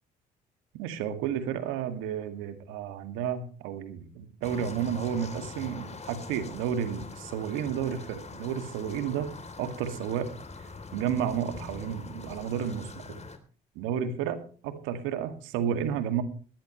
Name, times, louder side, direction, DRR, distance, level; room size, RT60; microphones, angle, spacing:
voice 1, 0.8-9.3 9.6-10.3 10.9-13.2 13.8-16.2, right 8 dB, 85° right, 9 dB, 2.2 m, -32 dB
sound 1, 4.4-13.4, left 4 dB, 35° left, 3.5 m, -43 dB
19.0 x 14.5 x 3.2 m, 0.39 s
supercardioid pair, 65°, 20 cm